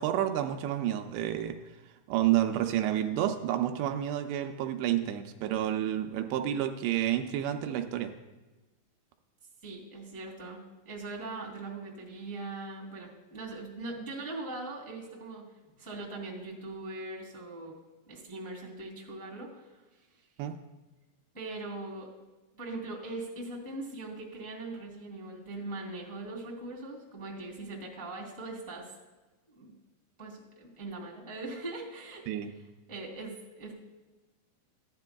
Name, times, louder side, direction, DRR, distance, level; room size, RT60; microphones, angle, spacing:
voice 1, 0.0-1.6 2.1-8.1 20.4-20.5 32.3-32.5, right 11 dB, 85° right, 5 dB, 2.7 m, -29 dB
voice 2, 9.6-17.8 18.1-20.3 21.3-22.1 22.5-29.0 29.5-29.7 30.2-32.2 32.9-33.7, right 2 dB, 5° left, -2 dB, 1.4 m, -41 dB
15.0 x 10.5 x 2.3 m, 1.2 s
omnidirectional pair, 5.0 m